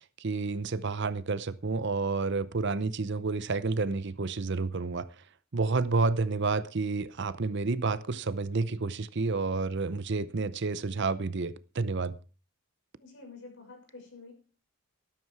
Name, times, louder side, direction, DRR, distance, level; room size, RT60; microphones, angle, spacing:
voice 1, 0.2-5.1 5.5-12.1, right 3 dB, 50° right, 0.7 m, -30 dB
voice 2, 13.0-14.3, left 3 dB, 55° left, 6.2 m, -48 dB
13.0 x 13.0 x 4.7 m
head